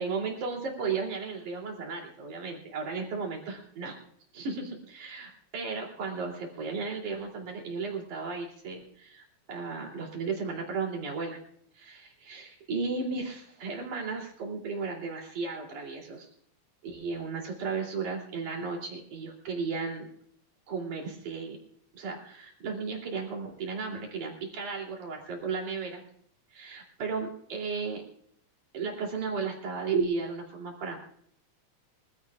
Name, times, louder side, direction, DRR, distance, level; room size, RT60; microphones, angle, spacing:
voice 1, 0.0-4.0 4.3-11.4 11.7-16.3 16.8-20.1 20.7-21.6 21.9-26.0 26.5-28.0 28.7-31.0, right 4 dB, 80° right, 0 dB, 4.5 m, -34 dB
24.5 x 16.0 x 2.4 m, 0.66 s
omnidirectional pair, 3.4 m